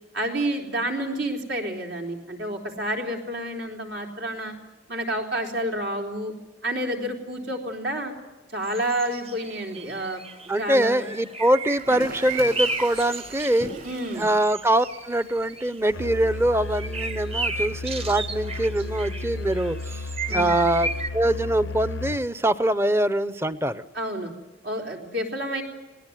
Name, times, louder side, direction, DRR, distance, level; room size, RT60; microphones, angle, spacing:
voice 1, 0.1-4.5 4.9-6.3 6.6-8.1 8.5-10.2 10.6-11.1 13.8-14.3 20.3-20.5 23.9-24.3 24.6-25.6, right 1 dB, 75° right, 2 dB, 3.8 m, -29 dB
sound 1, 8.6-15.8 16.6-21.1, right 2 dB, 30° right, 1.1 m, -34 dB
voice 2, 10.5-13.7 14.2-20.9 21.1-23.8, right 1 dB, 15° right, 14 dB, 0.7 m, -23 dB
Toilet flush, 11.8-19.8, right 2 dB, 50° right, 6.5 m, -43 dB
Musical instrument, 15.9-22.3, left 3 dB, 85° left, 0.7 m, -34 dB
20.5 x 18.0 x 9.2 m, 1.1 s
head